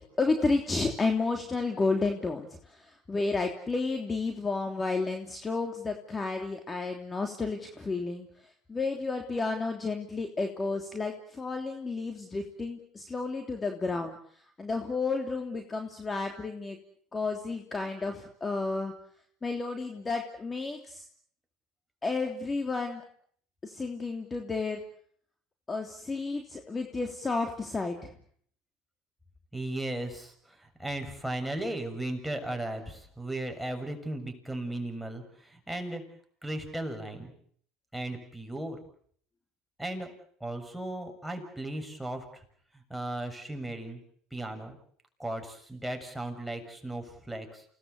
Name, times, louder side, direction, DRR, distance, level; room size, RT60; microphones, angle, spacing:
voice 1, 0.2-16.8 17.1-18.9 19.4-21.0 22.0-23.0 23.6-24.8 25.7-28.1, left 3 dB, 20° left, 4 dB, 3.2 m, -31 dB
voice 2, 29.5-36.0 36.4-37.3 37.9-38.8 39.8-40.1 40.4-42.4 42.7-44.0 44.3-44.8 45.2-47.7, right 1 dB, 5° right, 4 dB, 7.0 m, -36 dB
29.0 x 19.0 x 8.4 m, 0.62 s
supercardioid pair, 95°, 0 cm